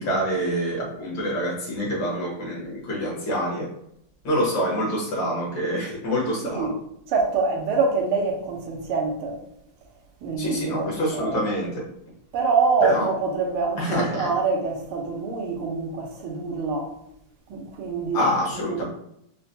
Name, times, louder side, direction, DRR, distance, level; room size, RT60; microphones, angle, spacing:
voice 1, 0.0-3.7 4.2-6.7 10.4-11.8 12.8-13.1 13.8-14.3 18.1-18.8, equal, 65° left, 1.9 m, -26 dB
voice 2, 6.4-6.7 7.1-9.4 10.2-11.4 12.3-17.0 17.5-18.2 18.5-18.8, right 4 dB, 85° right, 1.7 m, -25 dB
4.8 x 2.2 x 2.6 m
omnidirectional pair, 2.3 m